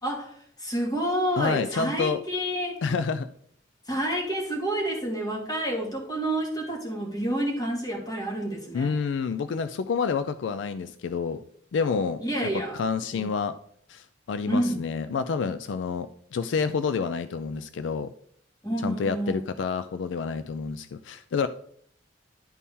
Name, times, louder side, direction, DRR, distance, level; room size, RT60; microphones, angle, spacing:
voice 1, 0.0-2.8 3.9-8.9 12.2-12.8 13.1-13.3 14.5-14.8 18.6-19.4, right 1 dB, 20° left, -2 dB, 2.2 m, -29 dB
voice 2, 1.4-2.2 2.8-3.3 8.7-11.4 11.7-12.2 12.7-13.6 13.9-18.1 18.8-21.5, left 5 dB, 70° left, 12 dB, 0.4 m, -28 dB
11.0 x 4.2 x 3.6 m, 0.64 s
head